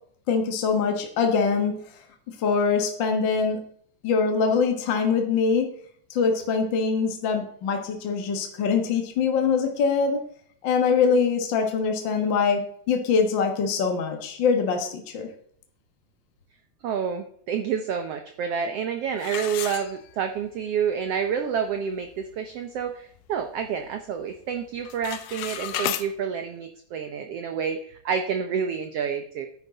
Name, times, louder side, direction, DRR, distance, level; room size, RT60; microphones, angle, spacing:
voice 1, 0.3-1.8 2.4-3.6 4.0-5.7 6.1-10.2 10.6-15.3, left 5 dB, 50° left, 4 dB, 1.4 m, -23 dB
voice 2, 16.8-29.5, right 7 dB, 90° right, 7 dB, 1.3 m, -29 dB
sound 1, 19.2-20.5 20.9-21.0 21.6-21.7 22.1-22.4 22.8-23.9 24.2-24.5 24.8-26.1, left 12 dB, 80° left, 2.3 m, -33 dB
10.5 x 9.9 x 4.0 m, 0.62 s
omnidirectional pair, 3.9 m